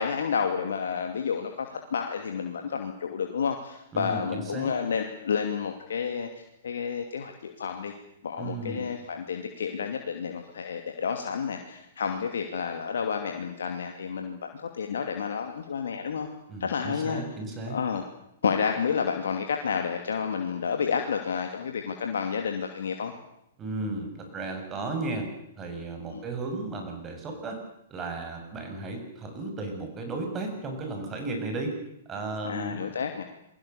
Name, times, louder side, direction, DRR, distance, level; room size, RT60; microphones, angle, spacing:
voice 1, 0.0-7.9 8.2-16.3 16.6-17.2 17.7-18.0 18.4-23.1 26.1-26.2 32.4-33.2, left 6 dB, 65° left, 4 dB, 2.6 m, -30 dB
voice 2, 3.9-4.7 8.4-8.9 16.5-17.8 23.6-25.3 25.6-27.6 27.9-31.7 32.1-32.9, right 2 dB, 20° right, 4 dB, 7.3 m, -34 dB
28.5 x 21.5 x 7.1 m, 0.81 s
figure-of-eight pair, 110°, 0 cm